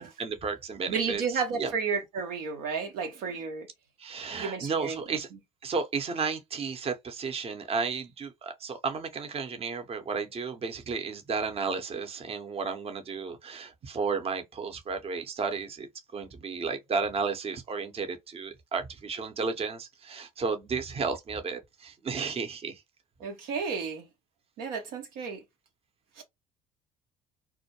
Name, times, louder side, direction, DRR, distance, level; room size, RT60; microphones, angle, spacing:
voice 1, 0.0-1.2 1.6-1.7 4.0-5.3 5.6-22.8, right 5 dB, 35° right, 0.7 m, -33 dB
voice 2, 0.9-3.7 4.3-5.0 23.2-24.1 24.6-25.4 26.2-26.3, right 5 dB, 70° right, 0.6 m, -32 dB
2.2 x 2.1 x 2.7 m
hypercardioid pair, 60°, 17 cm